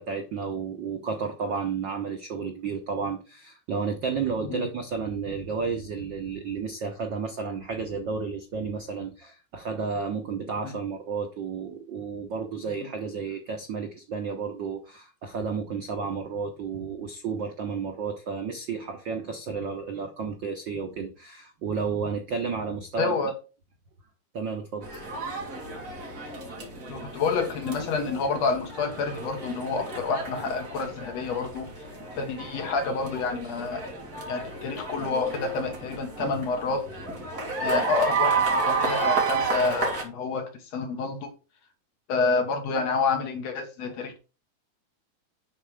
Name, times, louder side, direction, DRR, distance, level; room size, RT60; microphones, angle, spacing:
voice 1, 0.0-23.2 24.3-24.9, right 5 dB, 70° right, 1.1 m, -32 dB
voice 2, 23.0-23.3 26.9-31.7 32.2-33.9 34.3-36.9 37.6-41.3 42.1-44.1, left 4 dB, 65° left, 2.4 m, -28 dB
sound 1, 24.8-40.0, right 4 dB, 35° right, 2.5 m, -31 dB
10.5 x 4.3 x 4.8 m
omnidirectional pair, 3.5 m